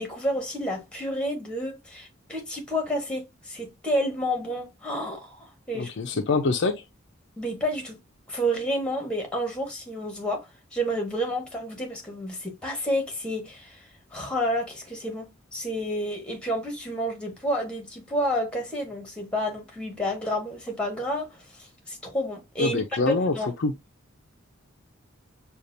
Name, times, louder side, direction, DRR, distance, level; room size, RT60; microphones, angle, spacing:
voice 1, 0.0-5.9 7.4-8.0 8.3-23.5, equal, 5° left, 1.4 m, -30 dB
voice 2, 5.7-6.8 22.6-23.3 23.6-23.7, left 3 dB, 60° left, 0.5 m, -25 dB
6.5 x 2.4 x 2.7 m
head